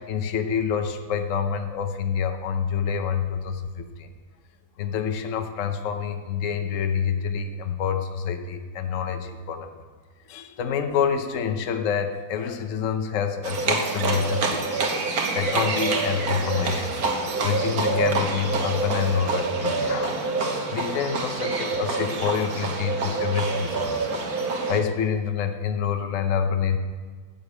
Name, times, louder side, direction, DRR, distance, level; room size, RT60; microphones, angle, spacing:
voice 1, 0.0-4.1 4.8-9.7 10.3-14.8 15.3-16.9 17.4-24.1 24.7-26.8, left 7 dB, 55° left, 6 dB, 1.2 m, -27 dB
Livestock farm animals working animals, 13.4-24.8, right 3 dB, 65° right, 1.8 m, -26 dB
12.5 x 7.1 x 8.5 m, 1.5 s
omnidirectional pair, 1.8 m